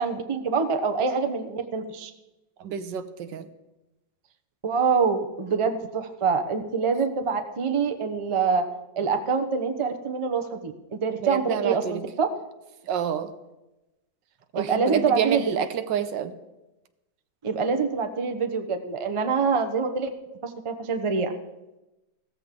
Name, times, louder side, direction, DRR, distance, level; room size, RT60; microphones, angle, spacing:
voice 1, 0.0-2.1 4.6-8.6 9.0-12.3 14.5-15.4 17.4-20.1 20.4-21.3, right 5 dB, 25° right, 6 dB, 0.6 m, -25 dB
voice 2, 2.6-3.5 11.2-12.0 12.9-13.3 14.5-16.3, right 8 dB, 80° right, 11 dB, 1.5 m, -28 dB
15.5 x 14.0 x 3.7 m, 0.99 s
omnidirectional pair, 1.9 m